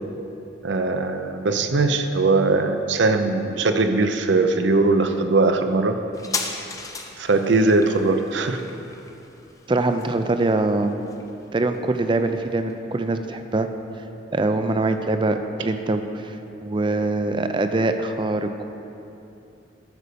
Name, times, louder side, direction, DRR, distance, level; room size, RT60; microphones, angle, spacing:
voice 1, 0.6-6.0 7.2-8.6, right 3 dB, 70° right, 7 dB, 0.6 m, -20 dB
sound 1, 6.1-13.2 13.5-13.6, left 4 dB, 15° left, 0.6 m, -37 dB
voice 2, 9.7-10.9 11.5-13.7 14.3-16.4 16.6-18.7, right 2 dB, 25° right, 8 dB, 0.4 m, -23 dB
11.0 x 5.0 x 6.8 m, 2.8 s
head